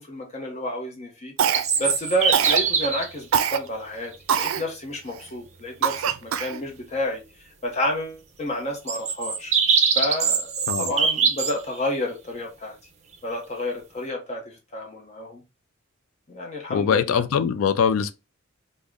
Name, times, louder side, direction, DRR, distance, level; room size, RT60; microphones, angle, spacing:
voice 1, 0.0-1.3 1.8-7.2 7.6-9.5 9.9-10.5 10.8-12.7 13.2-15.4 16.3-17.2, left 1 dB, 35° left, 0.7 m, -30 dB
Cough, 1.4-1.9 2.3-2.7 3.3-3.6 4.3-4.6 5.2-5.3 5.8-6.6, right 8 dB, 85° right, 0.4 m, -23 dB
sound 1, 1.5-3.1 4.1-4.2 8.9-11.6, right 6 dB, 35° right, 0.6 m, -22 dB
voice 2, 16.7-18.1, left 7 dB, 85° left, 0.3 m, -22 dB
3.5 x 2.0 x 3.4 m
head